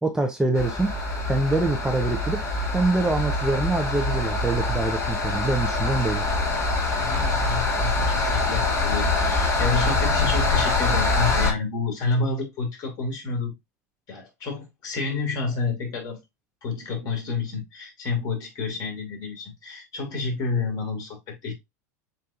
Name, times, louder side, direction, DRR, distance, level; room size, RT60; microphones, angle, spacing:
voice 1, 0.0-0.9 1.3-2.4 2.7-6.2, right 2 dB, 5° right, 0.8 m, -24 dB
sound 1, 0.5-11.5, left 3 dB, 30° left, 1.8 m, -24 dB
voice 2, 6.9-13.5 14.1-16.2 16.6-21.5, left 4 dB, 45° left, 2.7 m, -29 dB
7.5 x 2.8 x 2.5 m
hypercardioid pair, 90°, 9 cm